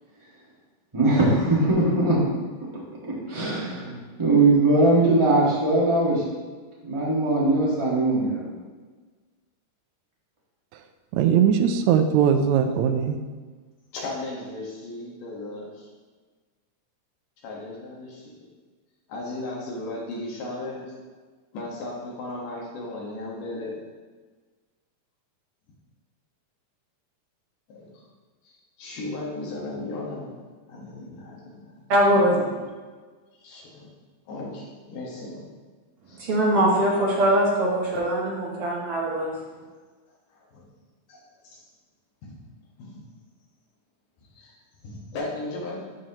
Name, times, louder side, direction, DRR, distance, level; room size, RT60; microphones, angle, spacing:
voice 1, 0.9-2.2 3.1-6.2 6.8-8.4, right 2 dB, 20° right, -6 dB, 0.9 m, -20 dB
voice 2, 11.1-13.2, right 8 dB, 80° right, 7 dB, 1.7 m, -20 dB
voice 3, 13.9-15.9 17.4-18.3 19.1-21.0 21.5-23.8 27.7-27.9 28.4-30.4 30.7-31.9 32.3-32.5 33.4-33.9 34.3-35.5 36.1-36.3 40.3-40.7 41.1-41.7 42.2-42.4 42.8-43.1 44.4-44.6 44.8-45.8, left 2 dB, 85° left, -3 dB, 3.0 m, -36 dB
voice 4, 31.9-32.4 36.2-39.3, right 1 dB, 65° right, -3 dB, 1.6 m, -22 dB
12.5 x 4.3 x 2.9 m, 1.4 s
omnidirectional pair, 3.6 m